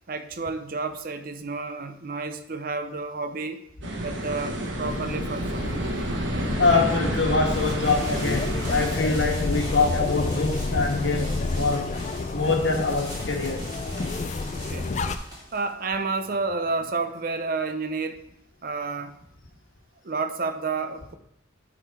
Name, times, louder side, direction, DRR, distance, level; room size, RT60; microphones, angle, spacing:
voice 1, 0.1-3.6 4.0-5.8 14.5-14.9 15.5-18.2 18.6-19.2 20.0-21.1, right 4 dB, 50° right, 9 dB, 0.6 m, -30 dB
sound 1, 3.8-9.0, right 1 dB, 75° right, 1.2 m, -30 dB
sound 2, 4.8-15.2, left 3 dB, 35° left, 0.4 m, -30 dB
voice 2, 6.6-11.9 12.3-14.0, left 3 dB, 70° left, 2 dB, 1.3 m, -24 dB
sound 3, 7.5-17.1, right 1 dB, 20° right, 2.4 m, -41 dB
9.2 x 3.8 x 4.6 m, 0.77 s
head